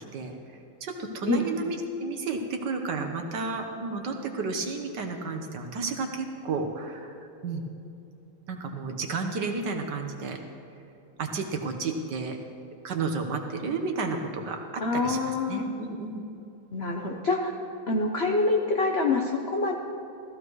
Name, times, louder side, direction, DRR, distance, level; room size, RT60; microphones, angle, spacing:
voice 1, 0.8-7.2 7.4-7.6 8.5-10.4 11.2-12.4 12.8-16.2, right 4 dB, 60° right, 3 dB, 1.5 m, -32 dB
voice 2, 14.8-15.6 16.7-17.5 17.9-19.8, left 3 dB, 70° left, 1 dB, 0.5 m, -26 dB
15.5 x 14.5 x 3.2 m, 2.8 s
omnidirectional pair, 2.3 m